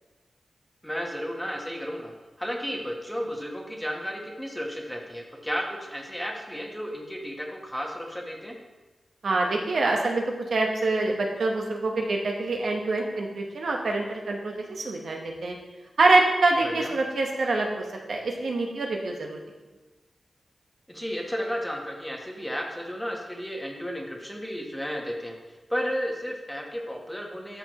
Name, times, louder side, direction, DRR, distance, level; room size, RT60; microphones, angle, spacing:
voice 1, 0.8-2.1 2.4-8.6 16.6-16.9 20.9-25.4 25.7-27.6, equal, 5° left, 0 dB, 1.1 m, -33 dB
voice 2, 9.2-10.2 10.5-15.6 16.0-19.4, right 2 dB, 75° right, 1 dB, 1.2 m, -25 dB
12.0 x 5.9 x 3.1 m, 1.2 s
wide cardioid pair, 140°, 0 cm